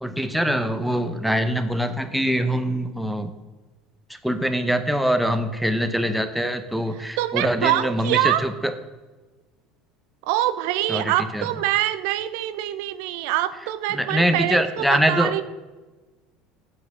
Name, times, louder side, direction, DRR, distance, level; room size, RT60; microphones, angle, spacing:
voice 1, 0.0-3.3 4.2-8.7 10.9-11.4 13.9-15.4, equal, ahead, 8 dB, 0.7 m, -23 dB
voice 2, 6.9-8.5 10.2-15.4, right 13 dB, 75° right, 14 dB, 0.5 m, -25 dB
7.7 x 4.7 x 6.7 m, 1.2 s
supercardioid pair, 105°, 0 cm